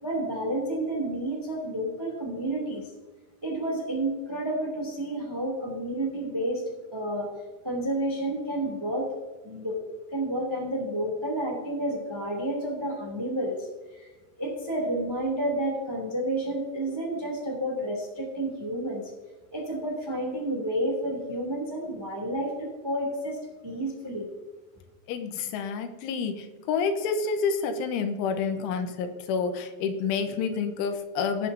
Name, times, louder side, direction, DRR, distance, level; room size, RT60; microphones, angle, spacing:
voice 1, 0.0-2.9 3.4-6.6 6.9-7.3 7.6-9.1 9.4-9.8 10.1-14.1 14.4-19.1 19.5-23.4 23.6-24.3, right 1 dB, 10° right, -2 dB, 1.4 m, -30 dB
voice 2, 25.1-31.5, left 5 dB, 85° left, 6 dB, 3.4 m, -29 dB
19.0 x 8.9 x 2.8 m, 1.2 s
omnidirectional pair, 5.6 m